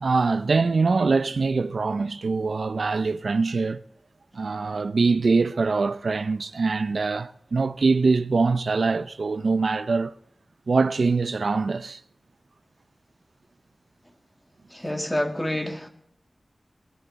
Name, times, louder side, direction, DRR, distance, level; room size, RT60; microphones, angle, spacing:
voice 1, 0.0-3.8 4.3-10.1 10.7-12.0, right 4 dB, 85° right, 0.5 m, -23 dB
voice 2, 14.7-15.9, left 1 dB, 15° left, 2.1 m, -28 dB
20.0 x 11.5 x 4.1 m
wide cardioid pair, 60°, 0 cm